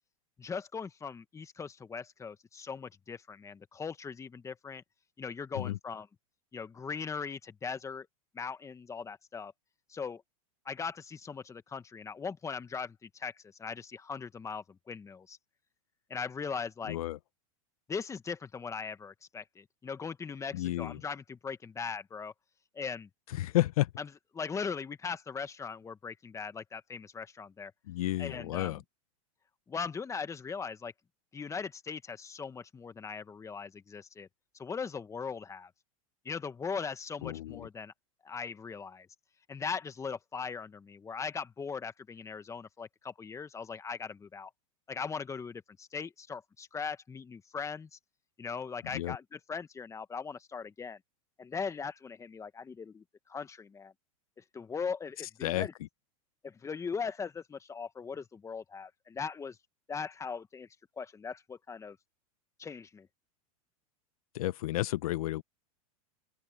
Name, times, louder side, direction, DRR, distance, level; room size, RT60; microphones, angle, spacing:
voice 1, 0.4-4.8 5.2-6.1 6.5-8.1 8.3-9.5 9.9-10.2 10.6-15.4 16.1-17.0 17.9-22.3 22.7-23.1 24.0-24.1 24.3-27.7 28.2-28.8 29.7-30.9 31.3-34.3 34.6-35.7 36.2-37.9 38.2-39.1 39.5-44.5 44.9-48.0 48.4-51.0 51.4-53.0 53.3-53.9 54.4-55.7 56.4-59.6 59.9-60.7 61.0-62.0 62.6-63.1, left 5 dB, 15° left, 1.6 m, -39 dB
voice 2, 16.9-17.2 20.5-21.0 23.3-23.9 27.9-28.8 37.2-37.7 48.9-49.2 55.4-55.7 64.3-65.4, left 15 dB, 75° left, 0.7 m, -31 dB
open air
hypercardioid pair, 120°, 19 cm